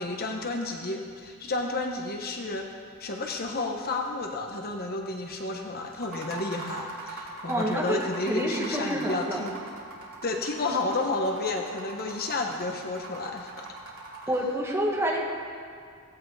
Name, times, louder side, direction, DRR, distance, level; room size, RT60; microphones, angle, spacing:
voice 1, 0.0-2.7 3.0-9.6 10.2-13.7, left 2 dB, 45° left, 2 dB, 1.1 m, -31 dB
sound 1, 5.9-14.5, right 3 dB, 70° right, 3.1 m, -42 dB
voice 2, 7.5-9.5 14.3-15.2, right 1 dB, 10° right, -3 dB, 2.1 m, -28 dB
17.5 x 16.0 x 4.1 m, 2.2 s
head